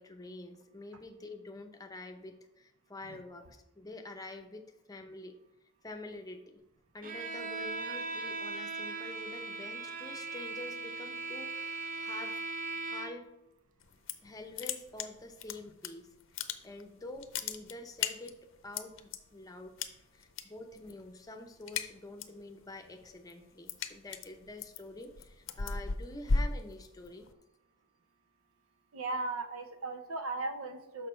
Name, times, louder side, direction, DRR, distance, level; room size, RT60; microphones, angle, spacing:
voice 1, 0.0-5.4 5.8-6.6 6.9-12.4 12.7-13.3 14.2-16.1 16.6-18.3 18.6-19.8 20.1-27.3, left 2 dB, 15° left, 5 dB, 0.7 m, -47 dB
Bowed string instrument, 7.0-13.3, right 3 dB, 40° right, 0.8 m, -39 dB
sound 1, 13.8-14.3 14.6-15.9 16.2-16.9 17.2-19.2 19.8-20.4 20.7-21.1 21.4-22.4 22.8-27.3, left 4 dB, 60° left, 0.6 m, -35 dB
voice 2, 28.9-31.1, right 2 dB, 90° right, 8 dB, 0.8 m, -37 dB
6.5 x 5.8 x 4.4 m, 0.91 s
head